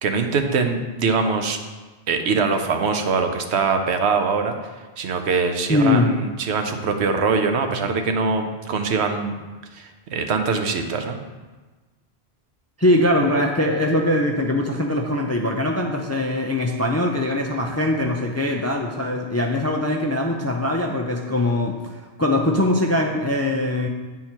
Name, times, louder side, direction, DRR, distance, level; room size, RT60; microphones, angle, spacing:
voice 1, 0.0-1.6 2.1-4.5 5.0-9.3 9.7-11.2, right 4 dB, 80° right, 6 dB, 1.0 m, -23 dB
voice 2, 5.7-6.1 12.8-23.9, left 1 dB, 25° left, 1 dB, 0.3 m, -22 dB
9.5 x 3.7 x 4.4 m, 1.3 s
omnidirectional pair, 1.1 m